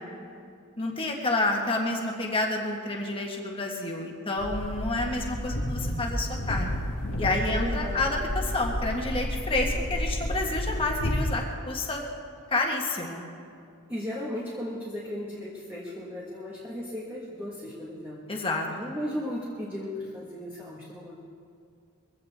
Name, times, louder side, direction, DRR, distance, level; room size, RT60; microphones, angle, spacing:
voice 1, 0.8-6.7 7.2-12.0 12.5-13.2 18.3-18.7, left 2 dB, 25° left, 0 dB, 1.6 m, -29 dB
sound 1, 4.4-11.3, left 1 dB, 65° left, 1.3 m, -31 dB
voice 2, 7.5-8.0 13.9-18.2 18.7-21.1, equal, 10° right, -6 dB, 1.6 m, -36 dB
23.0 x 15.5 x 3.6 m, 2.4 s
head